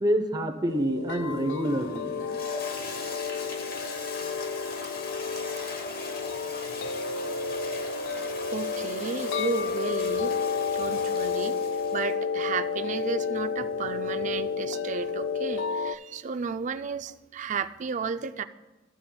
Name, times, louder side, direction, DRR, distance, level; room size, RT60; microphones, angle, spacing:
voice 1, 0.0-2.1, equal, 20° right, 6 dB, 0.7 m, -27 dB
sound 1, 0.7-16.0, left 5 dB, 80° left, 0.3 m, -31 dB
Toilet flush, 1.1-12.2, left 3 dB, 55° left, 1.0 m, -39 dB
voice 2, 8.1-11.6 11.9-18.4, right 5 dB, 40° right, 10 dB, 0.3 m, -33 dB
14.0 x 7.6 x 2.2 m, 1.1 s
head